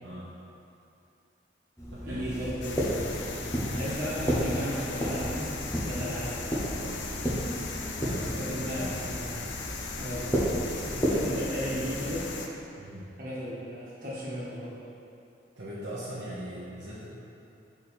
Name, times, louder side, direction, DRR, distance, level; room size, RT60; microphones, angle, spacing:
voice 1, 0.0-0.3 1.9-2.3 6.8-7.1 8.0-8.9 12.7-13.1 15.6-17.1, right 1 dB, 75° right, -8 dB, 0.8 m, -40 dB
sound 1, 1.8-12.2, equal, 15° left, 0.8 m, -32 dB
voice 2, 2.0-5.5 5.8-6.5 8.1-9.5 10.0-12.3 13.2-14.7, equal, 50° right, -8 dB, 1.5 m, -35 dB
sound 2, 2.6-12.5, left 4 dB, 85° left, 0.5 m, -38 dB
6.5 x 3.5 x 4.2 m, 2.7 s
head